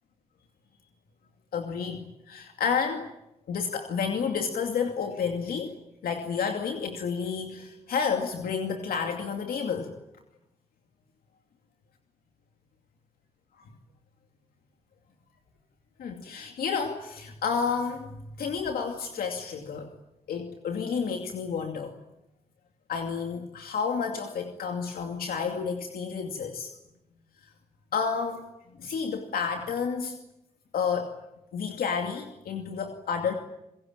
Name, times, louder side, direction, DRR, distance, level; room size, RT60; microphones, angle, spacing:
voice 1, 1.5-3.1 3.5-5.7 6.0-9.9 16.0-19.9 20.3-21.9 22.9-26.7 27.9-28.4 28.8-30.1 30.7-31.2 31.5-33.3, left 6 dB, 85° left, 4 dB, 2.6 m, -30 dB
26.0 x 22.5 x 8.9 m, 0.87 s
supercardioid pair, 45°, 15 cm